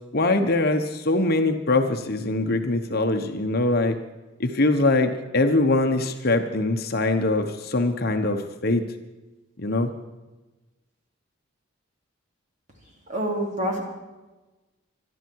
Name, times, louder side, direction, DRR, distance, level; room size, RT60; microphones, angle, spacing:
voice 1, 0.1-4.0 4.4-8.8 9.6-9.9, left 2 dB, 50° left, 6 dB, 1.1 m, -22 dB
voice 2, 13.1-13.8, right 1 dB, 35° right, 0 dB, 3.5 m, -26 dB
24.5 x 11.5 x 4.7 m, 1.1 s
head